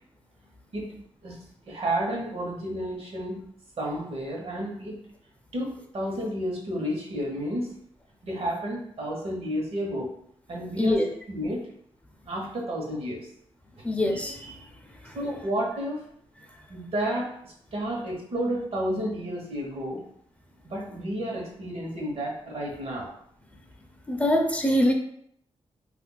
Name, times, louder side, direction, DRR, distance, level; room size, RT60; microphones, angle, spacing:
voice 1, 1.7-3.4 3.8-5.0 5.5-7.7 8.2-10.1 10.5-11.0 11.3-11.6 12.3-13.2 15.1-16.0 16.7-20.0 20.6-23.1, equal, 65° right, -1 dB, 1.0 m, -31 dB
voice 2, 10.8-11.1 13.8-14.5 24.1-24.9, left 1 dB, 10° left, 1 dB, 0.5 m, -23 dB
2.5 x 2.3 x 3.8 m, 0.69 s
cardioid pair, 70°, 11 cm